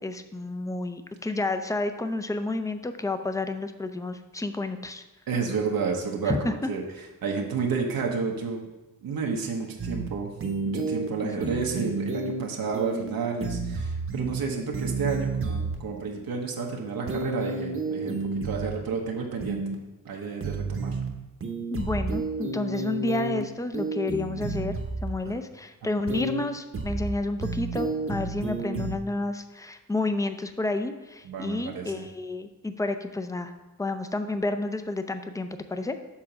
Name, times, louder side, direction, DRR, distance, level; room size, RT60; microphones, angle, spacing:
voice 1, 0.0-5.0 6.2-6.5 11.2-11.6 21.7-24.8 25.0-33.5 33.8-36.0, left 2 dB, 10° left, 8 dB, 0.5 m, -30 dB
voice 2, 5.3-6.8 7.2-8.7 9.0-10.3 10.7-19.7 20.0-21.0 25.2-25.3 31.2-32.1, right 5 dB, 90° right, 0 dB, 1.0 m, -31 dB
sound 1, 9.8-10.1 10.4-11.1 11.4-12.4 12.7-13.1 13.4-14.4 14.7-15.7 17.1-18.7 19.4-19.7 20.4-21.1 21.4-23.4 23.7-25.1 26.1-26.4 26.7-27.1 27.4-29.0, right 3 dB, 40° right, 0.9 m, -31 dB
7.3 x 3.8 x 5.8 m, 1.1 s
wide cardioid pair, 100°, 34 cm